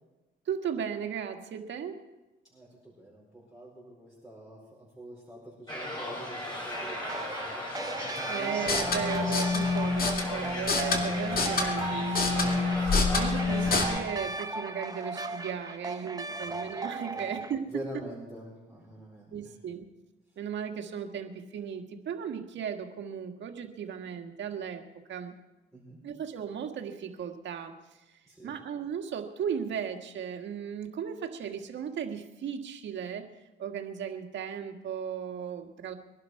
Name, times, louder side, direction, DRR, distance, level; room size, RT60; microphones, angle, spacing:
voice 1, 0.5-2.0 8.3-17.7 19.3-19.9 20.4-24.8 25.1-25.4 26.0-27.7 28.4-33.3 33.6-35.9, right 8 dB, 65° right, 5 dB, 1.7 m, -36 dB
voice 2, 2.5-8.3 10.4-10.7 16.3-16.5 17.1-17.3 17.7-19.4 25.7-26.0 28.3-28.5, right 1 dB, 5° right, -6 dB, 4.8 m, -46 dB
sound 1, 5.7-14.0, left 1 dB, 20° left, 6.7 m, -37 dB
sound 2, 6.7-17.5, right 3 dB, 20° right, 1.0 m, -37 dB
sound 3, 8.6-13.8, left 4 dB, 45° left, 2.2 m, -28 dB
22.5 x 11.5 x 4.8 m, 1.1 s
cardioid pair, 90°, 20 cm